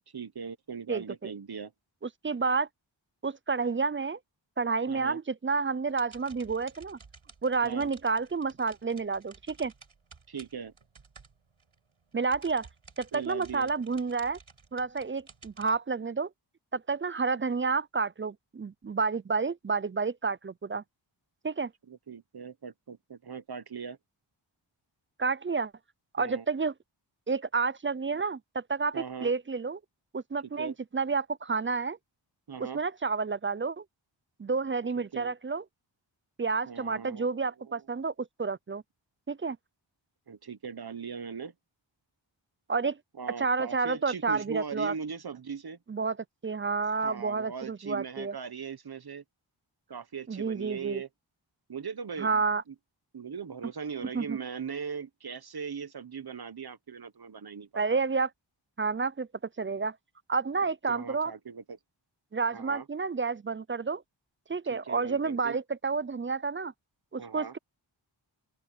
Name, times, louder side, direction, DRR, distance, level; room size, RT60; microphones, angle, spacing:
voice 1, 0.1-1.7 4.9-5.2 7.6-7.9 10.3-10.7 13.1-13.7 21.9-24.0 26.2-26.4 28.9-29.3 30.4-30.7 32.5-32.8 35.0-35.3 36.7-37.8 40.3-41.5 43.2-45.8 47.0-49.2 49.9-51.1 51.7-52.7 53.1-58.0 60.6-61.8 62.5-62.9 64.7-65.6 67.2-67.5, right 6 dB, 50° right, 1.1 m, -40 dB
voice 2, 0.9-1.3 2.2-2.7 3.2-4.2 4.6-7.0 7.4-9.7 12.1-12.7 13.0-14.4 14.7-16.3 16.7-20.8 21.4-21.7 25.2-25.7 26.1-26.7 27.3-29.8 30.1-32.0 32.6-33.8 34.4-35.6 36.4-38.8 39.3-39.6 42.7-43.0 43.4-44.9 45.9-46.2 46.4-48.3 50.3-51.0 52.2-52.6 54.1-54.4 57.8-58.3 58.8-59.3 59.6-60.0 60.3-61.3 62.3-64.0 64.5-66.7 67.1-67.6, right 4 dB, 25° right, 0.4 m, -30 dB
sound 1, 5.8-11.8 12.1-15.8, right 5 dB, 85° right, 8.0 m, -54 dB
open air
wide cardioid pair, 75°, 48 cm